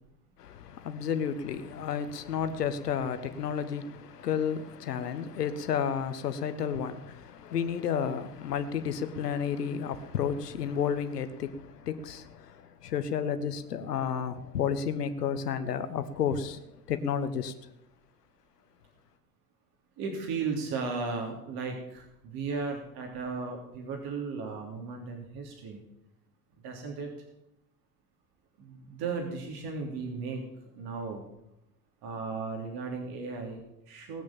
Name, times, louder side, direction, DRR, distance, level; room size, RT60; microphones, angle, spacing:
voice 1, 0.4-17.5, left 7 dB, 85° left, 1.3 m, -32 dB
voice 2, 20.0-25.8 26.6-27.1 28.6-30.4 30.7-31.2 32.0-34.2, right 4 dB, 50° right, 3.2 m, -35 dB
19.5 x 6.5 x 7.3 m
hypercardioid pair, 80°, 46 cm